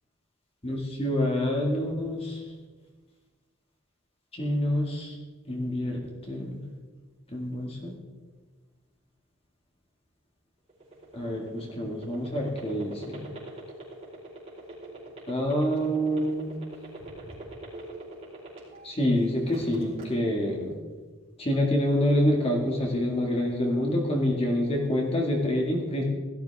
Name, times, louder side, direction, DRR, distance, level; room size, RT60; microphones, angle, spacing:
voice 1, 0.6-2.4 4.3-5.1 5.5-6.0 6.3-6.6 7.3-8.0 11.1-13.2 15.3-16.5 18.8-20.7 21.4-26.0, equal, 25° left, -1 dB, 1.9 m, -27 dB
sound 1, 10.7-18.9 19.3-20.0, right 2 dB, 30° right, 4.3 m, -42 dB
17.5 x 13.0 x 3.5 m, 1.4 s
head